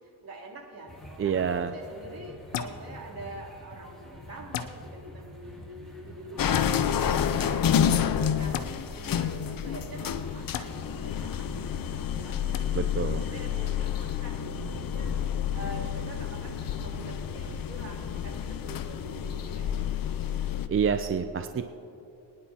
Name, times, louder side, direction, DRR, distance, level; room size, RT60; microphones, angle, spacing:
voice 1, 0.0-8.7 8.9-20.5, right 1 dB, 55° right, -4 dB, 3.2 m, -45 dB
sound 1, 0.9-18.5, left 1 dB, ahead, 2.6 m, -46 dB
voice 2, 1.2-1.7 12.7-13.2 20.7-21.6, right 7 dB, 30° right, 8 dB, 0.5 m, -27 dB
sound 2, 2.5-2.8 4.5-4.7 6.5-6.7 8.5-8.7 10.5-10.7 12.5-12.6, left 10 dB, 90° left, 0.8 m, -33 dB
sound 3, 6.4-20.7, left 8 dB, 50° left, 0.7 m, -29 dB
25.0 x 10.5 x 2.9 m, 2.8 s
cardioid pair, 105°, 43 cm